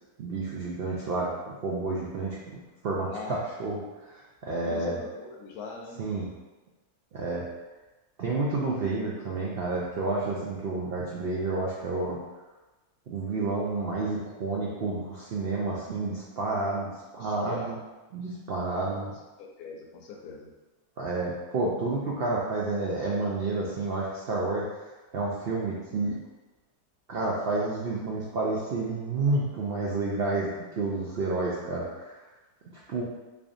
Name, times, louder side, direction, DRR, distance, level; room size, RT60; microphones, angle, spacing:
voice 1, 0.2-5.0 6.0-6.3 7.1-7.4 8.2-12.2 13.1-16.9 17.1-17.8 18.1-19.1 21.0-26.2 27.1-32.2 32.9-33.0, right 3 dB, 85° right, -4 dB, 0.5 m, -30 dB
voice 2, 3.1-3.4 4.6-6.0 17.2-17.7 18.7-18.9 19.4-20.5, left 4 dB, 75° left, 0 dB, 1.1 m, -41 dB
3.6 x 3.4 x 2.5 m, 1.1 s
omnidirectional pair, 1.7 m